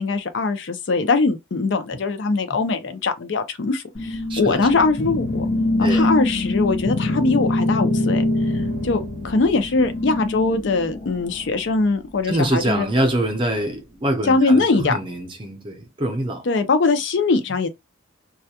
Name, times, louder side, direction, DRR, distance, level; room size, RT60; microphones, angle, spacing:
voice 1, 0.0-5.4 5.8-8.2 8.8-12.9 14.2-15.0 16.5-17.7, left 3 dB, 65° left, 0.5 m, -21 dB
sound 1, 3.9-11.7, left 2 dB, 35° left, 0.8 m, -24 dB
voice 2, 4.3-4.8 5.8-6.1 12.3-16.5, right 1 dB, 25° right, 0.6 m, -25 dB
2.3 x 2.1 x 2.8 m
head